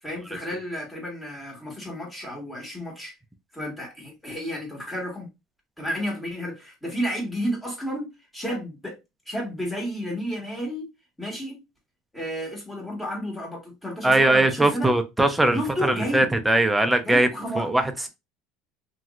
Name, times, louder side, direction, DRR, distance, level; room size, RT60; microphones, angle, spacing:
voice 1, 0.0-3.1 3.5-5.3 5.8-9.0 9.3-10.9 11.2-11.6 12.1-14.9 15.5-16.3 17.0-17.7, equal, 10° left, 1.5 m, -32 dB
voice 2, 14.0-17.3 17.6-17.8, right 1 dB, 5° right, 0.5 m, -20 dB
3.0 x 2.7 x 2.4 m
supercardioid pair, 125°, 0 cm